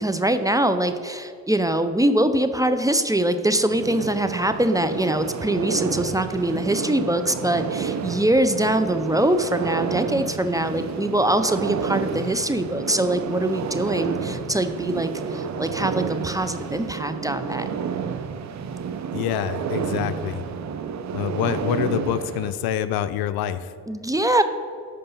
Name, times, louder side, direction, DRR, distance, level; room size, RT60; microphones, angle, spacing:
voice 1, 0.0-17.6 23.9-24.4, right 1 dB, 10° right, 9 dB, 0.7 m, -23 dB
sound 1, 3.6-22.5, right 6 dB, 45° right, 0.9 m, -30 dB
voice 2, 19.1-20.4 21.1-23.7, left 10 dB, 65° left, 13 dB, 0.7 m, -26 dB
13.5 x 5.3 x 5.6 m, 2.2 s
supercardioid pair, 80°, 39 cm